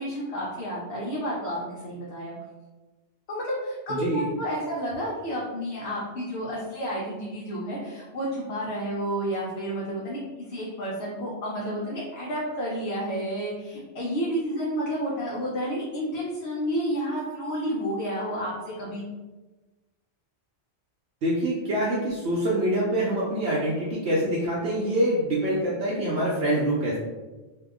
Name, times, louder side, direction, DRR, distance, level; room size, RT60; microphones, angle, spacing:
voice 1, 0.0-2.4 3.3-10.2 10.5-19.0, equal, 65° left, -5 dB, 0.9 m, -30 dB
voice 2, 3.9-4.2 21.2-27.0, right 1 dB, 65° right, -5 dB, 0.8 m, -25 dB
2.7 x 2.2 x 3.5 m, 1.2 s
omnidirectional pair, 1.3 m